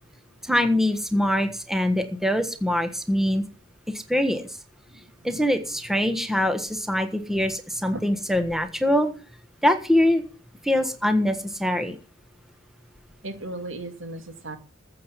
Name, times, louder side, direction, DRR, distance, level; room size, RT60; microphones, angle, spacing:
voice 1, 0.4-3.4 4.1-4.5 5.2-9.1 9.6-10.2 10.6-12.0, left 1 dB, ahead, 8 dB, 1.4 m, -23 dB
voice 2, 13.2-14.6, right 2 dB, 85° right, 8 dB, 2.3 m, -35 dB
14.0 x 7.7 x 6.9 m, 0.36 s
head